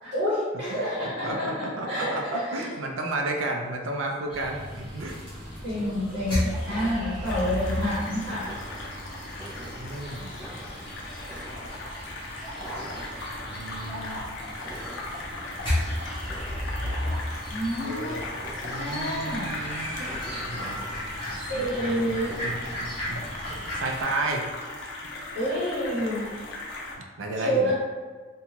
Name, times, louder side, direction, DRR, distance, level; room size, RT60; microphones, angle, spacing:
voice 1, 0.0-2.7 5.6-8.5 17.5-18.2 18.7-19.5 20.0-20.3 21.5-22.3 25.3-26.3 27.4-27.7, equal, 55° right, -9 dB, 0.9 m, -28 dB
voice 2, 1.2-5.2 9.4-10.3 13.5-14.2 15.1-15.2 17.8-18.2 18.6-19.9 20.5-20.8 21.5-22.0 22.4-23.2 23.7-24.5 27.0-27.7, right 2 dB, 85° right, 2 dB, 0.4 m, -33 dB
sound 1, 4.3-24.0, left 1 dB, 25° left, 0.9 m, -35 dB
sound 2, 6.6-23.3, right 1 dB, 20° right, 0.4 m, -47 dB
sound 3, 7.2-26.9, left 2 dB, 70° left, 0.5 m, -38 dB
2.7 x 2.2 x 2.9 m, 1.4 s
head